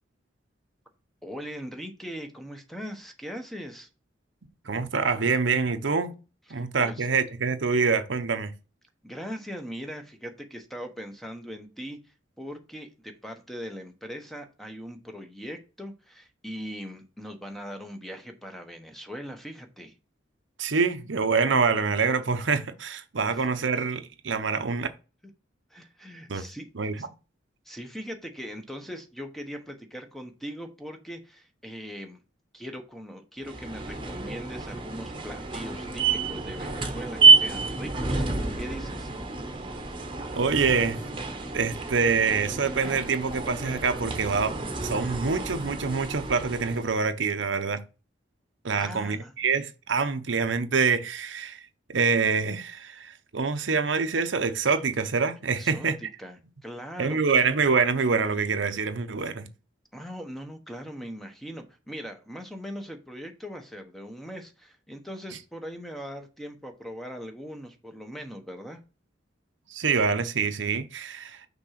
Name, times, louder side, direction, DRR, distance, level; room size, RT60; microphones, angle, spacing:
voice 1, 1.2-3.9 6.5-7.1 9.0-19.9 23.3-23.4 25.7-26.7 27.0-27.1 27.6-32.2 32.5-38.3 38.6-39.1 48.8-49.3 55.6-57.5 59.9-68.8, equal, ahead, 1.0 m, -40 dB
voice 2, 4.7-6.1 6.5-8.5 20.6-24.9 26.3-26.4 26.8-27.0 40.3-41.0 41.5-47.8 48.6-51.6 51.9-56.0 57.0-59.5 69.7-71.4, right 5 dB, 75° right, 0.8 m, -26 dB
sound 1, 33.4-46.9, right 4 dB, 30° right, 1.1 m, -27 dB
6.1 x 3.6 x 5.8 m
head